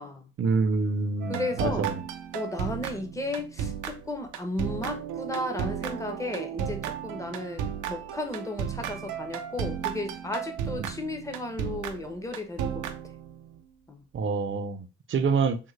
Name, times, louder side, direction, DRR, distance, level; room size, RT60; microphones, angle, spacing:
voice 1, 0.4-2.0 10.8-10.9 14.1-15.6, right 4 dB, 40° right, 0.5 m, -26 dB
sound 1, 1.2-13.6, right 8 dB, 85° right, 0.5 m, -34 dB
voice 2, 1.3-1.9 2.3-12.8 13.9-14.0, left 2 dB, 10° left, 0.7 m, -34 dB
3.7 x 2.1 x 3.1 m
cardioid pair, 90°, 30 cm